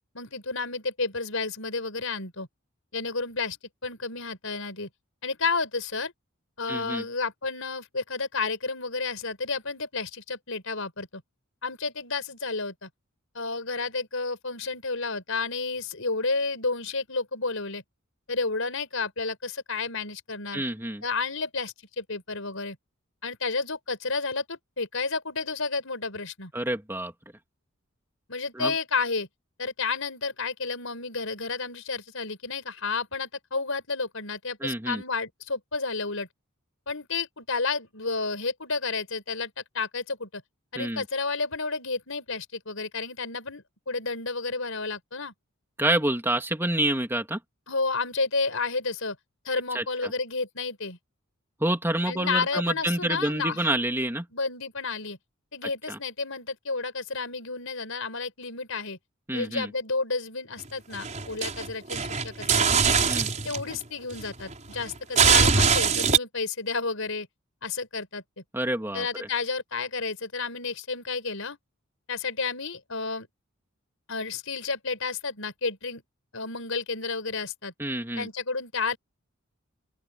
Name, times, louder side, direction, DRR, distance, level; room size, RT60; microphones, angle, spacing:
voice 1, 0.1-2.5 2.9-3.6 3.8-4.9 5.2-6.1 6.6-11.2 11.6-12.9 13.3-17.8 18.3-20.6 21.0-22.8 23.2-26.5 28.3-29.3 29.6-36.3 36.9-40.4 40.7-45.3 47.7-49.2 49.4-51.0 52.1-53.7 54.3-55.2 55.5-59.0 59.3-62.9 63.4-67.3 67.6-68.2 68.9-71.6 72.1-73.3 74.1-76.0 76.3-77.7 78.2-79.0, left 4 dB, 70° left, 5.6 m, -31 dB
voice 2, 6.7-7.1 20.5-21.0 26.5-27.1 28.5-28.7 34.6-35.0 40.8-41.0 45.8-47.4 49.7-50.1 51.6-54.3 55.9-56.0 59.3-59.7 63.1-63.3 68.5-69.3 77.8-78.3, right 1 dB, 10° right, 2.8 m, -28 dB
sound 1, 60.7-63.8 64.1-66.2, right 6 dB, 35° right, 5.3 m, -22 dB
open air
head